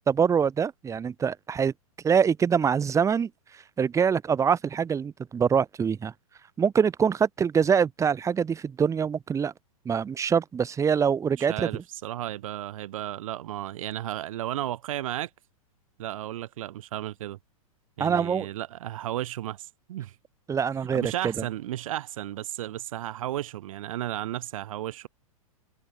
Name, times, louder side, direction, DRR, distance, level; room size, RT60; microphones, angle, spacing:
voice 1, 0.1-1.7 2.0-3.3 3.8-6.1 6.6-9.5 9.8-11.8 18.0-18.5 20.5-21.0, right 7 dB, 15° right, 1.5 m, -24 dB
voice 2, 11.4-15.3 16.0-17.4 18.0-20.2 20.9-25.1, right 13 dB, 65° right, 4.3 m, -34 dB
hypercardioid pair, 115°, 19 cm